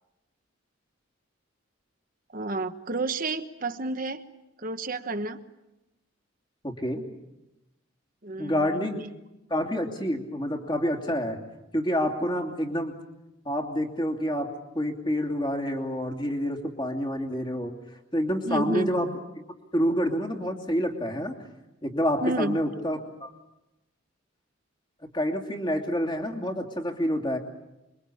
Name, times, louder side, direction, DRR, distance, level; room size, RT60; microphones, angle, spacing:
voice 1, 2.3-4.2 4.6-5.4 8.2-8.9 18.4-18.9 22.2-22.6, right 2 dB, 45° right, 8 dB, 1.2 m, -30 dB
voice 2, 6.6-7.0 8.4-9.0 9.5-11.4 11.7-13.0 13.4-17.7 18.1-19.1 19.7-21.3 21.8-23.3 25.1-27.4, equal, 25° left, 3 dB, 2.8 m, -28 dB
27.5 x 23.0 x 8.5 m, 0.95 s
head